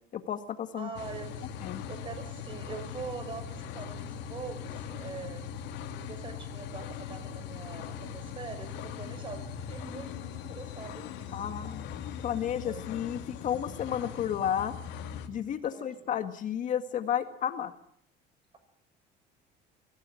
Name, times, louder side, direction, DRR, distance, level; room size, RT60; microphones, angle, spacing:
voice 1, 0.1-0.9 1.6-1.8 11.3-11.9 12.2-14.7 15.3-17.7, left 9 dB, 45° left, 9 dB, 1.8 m, -32 dB
voice 2, 0.7-1.5 1.9-5.4 5.9-11.7 12.6-12.9 15.7-15.9, right 5 dB, 25° right, 8 dB, 7.0 m, -43 dB
sound 1, 1.0-15.3, left 8 dB, 70° left, 2.7 m, -40 dB
23.5 x 17.0 x 9.7 m, 0.68 s
cardioid pair, 145°, 18 cm